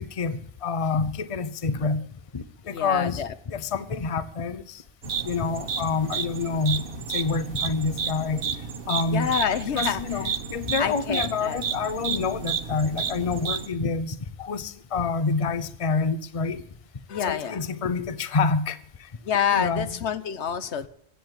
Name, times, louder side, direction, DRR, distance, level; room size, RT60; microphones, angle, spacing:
voice 1, 0.0-2.1 2.3-4.8 5.2-6.8 7.1-8.4 8.9-9.3 9.7-16.6 17.3-19.1 19.5-19.9, left 4 dB, 35° left, 0.8 m, -27 dB
voice 2, 2.6-3.3 9.1-10.3 10.8-11.6 17.1-17.6 19.2-20.9, left 8 dB, 80° left, 1.2 m, -27 dB
sound 1, 5.0-13.7, right 6 dB, 55° right, 1.2 m, -31 dB
16.0 x 9.1 x 9.1 m
omnidirectional pair, 1.1 m